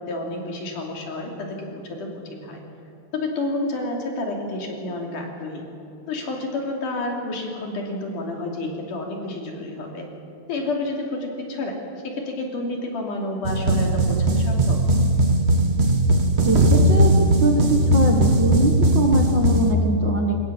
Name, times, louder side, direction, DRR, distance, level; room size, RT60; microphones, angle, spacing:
voice 1, 0.0-2.6 3.1-5.6 6.1-10.1 10.5-11.8 12.0-14.8, left 2 dB, 85° left, 0 dB, 4.5 m, -30 dB
sound 1, 13.4-19.7, right 1 dB, 85° right, 0.5 m, -18 dB
voice 2, 16.4-17.1 17.4-20.4, right 2 dB, 45° right, 2 dB, 1.9 m, -22 dB
23.5 x 19.5 x 7.6 m, 2.8 s
omnidirectional pair, 3.6 m